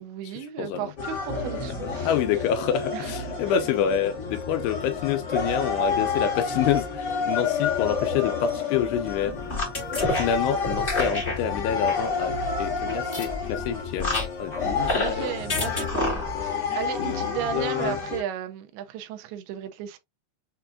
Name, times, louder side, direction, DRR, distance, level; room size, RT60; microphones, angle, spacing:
voice 1, 0.0-2.4 2.9-3.2 3.5-3.6 14.6-20.0, right 9 dB, 80° right, 2.5 m, -35 dB
voice 2, 0.6-0.9 2.0-9.3 10.1-15.3 17.0-18.0, left 8 dB, 85° left, 2.7 m, -27 dB
sound 1, 1.0-18.2, left 5 dB, 60° left, 1.0 m, -29 dB
sound 2, 9.0-15.1 15.5-16.5, left 2 dB, 40° left, 0.8 m, -30 dB
6.8 x 2.3 x 2.5 m
omnidirectional pair, 4.9 m